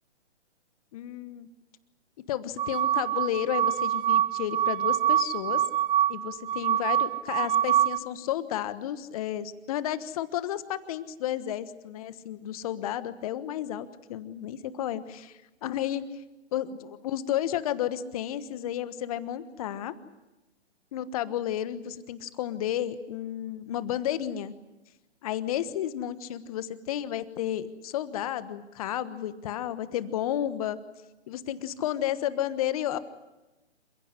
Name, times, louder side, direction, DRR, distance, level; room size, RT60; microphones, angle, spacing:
voice 1, 0.9-1.5 2.3-5.6 6.1-16.0 16.5-20.0 20.9-24.5 25.2-30.8 31.3-33.0, left 11 dB, 35° left, 14 dB, 1.3 m, -32 dB
sound 1, 2.6-8.0, right 11 dB, 50° right, 1.7 m, -25 dB
28.0 x 16.0 x 9.9 m, 1.1 s
figure-of-eight pair, 140°, 33 cm